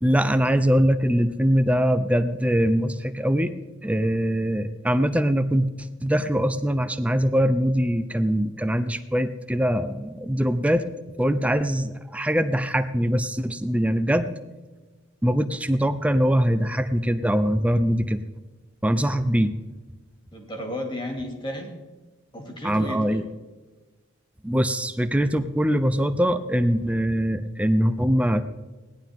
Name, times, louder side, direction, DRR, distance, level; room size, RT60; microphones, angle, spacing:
voice 1, 0.0-3.5 3.8-5.7 6.0-10.8 11.2-14.3 15.2-18.2 18.8-19.5 22.6-23.2 24.4-28.4, equal, 5° right, 11 dB, 0.5 m, -22 dB
voice 2, 20.3-21.7 22.3-23.2, equal, 25° left, 2 dB, 2.3 m, -33 dB
17.5 x 11.0 x 3.6 m, 1.3 s
head